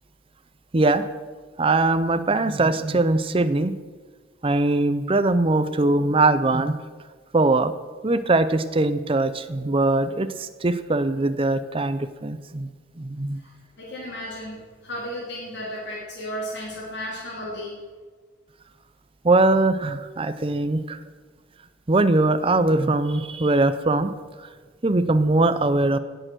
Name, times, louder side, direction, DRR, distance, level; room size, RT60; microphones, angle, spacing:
voice 1, 0.7-1.1 1.6-3.7 4.4-6.8 7.3-7.7 8.0-12.7 13.0-13.4 19.2-21.0 21.9-24.1 24.8-26.0, right 2 dB, 30° right, 11 dB, 0.6 m, -21 dB
voice 2, 13.8-17.8, equal, 60° left, -5 dB, 2.8 m, -34 dB
17.0 x 6.8 x 6.1 m, 1.5 s
head